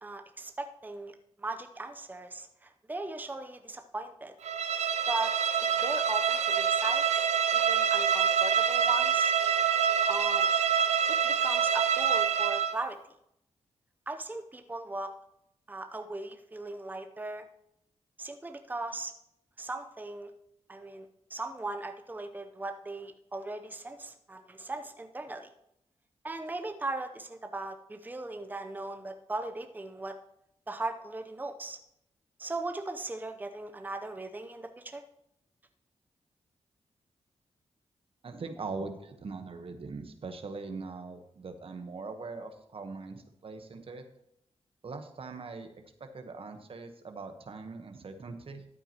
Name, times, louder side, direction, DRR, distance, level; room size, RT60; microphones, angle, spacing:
voice 1, 0.0-1.1 1.4-4.3 5.1-5.3 5.6-9.3 10.1-10.5 11.1-13.0 14.1-15.1 15.7-17.5 18.2-19.1 19.6-20.3 20.7-21.0 21.3-25.5 26.2-30.1 30.7-31.8 32.4-35.0, right 2 dB, 15° right, 6 dB, 0.7 m, -38 dB
Bowed string instrument, 4.4-12.8, right 7 dB, 80° right, 0.5 m, -26 dB
voice 2, 38.2-44.0 44.8-45.7 46.0-48.6, right 4 dB, 55° right, 7 dB, 1.1 m, -41 dB
13.5 x 8.9 x 2.9 m, 0.79 s
cardioid pair, 75°, 11 cm